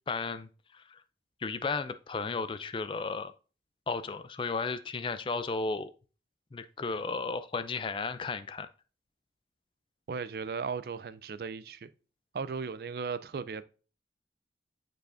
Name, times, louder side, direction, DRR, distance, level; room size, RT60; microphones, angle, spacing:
voice 1, 0.1-1.0 1.4-3.3 3.9-5.9 6.5-8.7, left 4 dB, 30° left, 0.3 m, -34 dB
voice 2, 10.1-11.9 12.3-13.6, right 5 dB, 55° right, 0.3 m, -36 dB
9.1 x 4.7 x 2.5 m
head